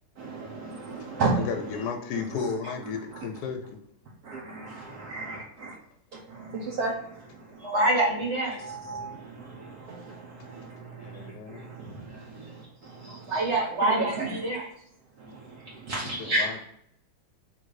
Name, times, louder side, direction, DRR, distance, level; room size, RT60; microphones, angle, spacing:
voice 1, 0.2-1.5 3.1-3.2 4.2-5.7 6.3-7.8 8.5-13.4 13.9-14.6 15.2-16.6, right 3 dB, 65° right, -4 dB, 1.2 m, -34 dB
voice 2, 1.0-3.8 6.6-6.7 11.0-11.6 16.2-16.6, left 5 dB, 75° left, 3 dB, 1.2 m, -34 dB
voice 3, 7.6-8.6 13.3-14.7, right 2 dB, 40° right, -2 dB, 1.4 m, -26 dB
3.8 x 2.7 x 4.7 m, 0.70 s
omnidirectional pair, 2.0 m